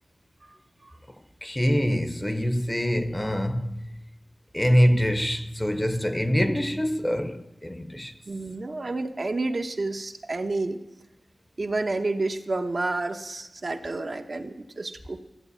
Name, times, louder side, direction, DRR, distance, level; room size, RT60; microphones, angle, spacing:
voice 1, 1.4-3.9 4.5-8.1, equal, 15° left, 0.8 m, -24 dB
voice 2, 8.3-10.8 11.6-15.2, right 2 dB, 50° right, 0.9 m, -30 dB
14.0 x 8.1 x 8.1 m
wide cardioid pair, 85°, 0 cm